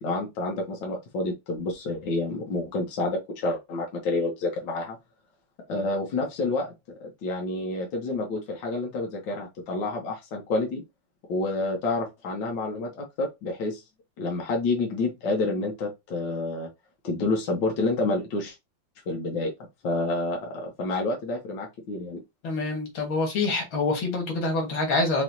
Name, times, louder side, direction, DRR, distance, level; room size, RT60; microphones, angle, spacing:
voice 1, 0.0-5.0 5.7-10.8 11.3-13.8 14.2-16.7 17.0-18.6 19.1-19.5 19.8-22.2, left 2 dB, 70° left, 1.8 m, -29 dB
voice 2, 22.4-25.2, left 3 dB, 90° left, 2.4 m, -26 dB
5.4 x 3.0 x 2.7 m
omnidirectional pair, 2.1 m